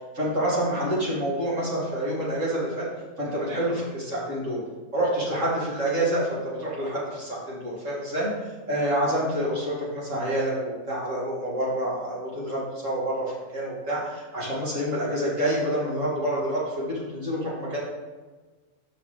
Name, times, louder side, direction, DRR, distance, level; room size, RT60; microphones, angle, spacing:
voice 1, 0.1-2.9 3.2-4.6 4.9-8.3 8.7-17.8, right 1 dB, 60° right, -6 dB, 2.7 m, -27 dB
6.2 x 5.7 x 5.2 m, 1.3 s
omnidirectional pair, 1.5 m